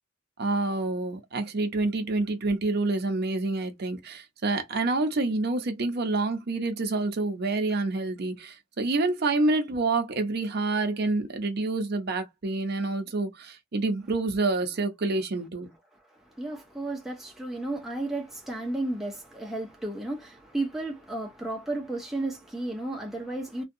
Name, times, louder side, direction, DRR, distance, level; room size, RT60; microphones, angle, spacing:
voice 1, 0.4-15.7, right 2 dB, 50° right, 0.6 m, -27 dB
voice 2, 16.1-23.6, right 2 dB, ahead, 0.5 m, -33 dB
2.6 x 2.2 x 2.5 m
head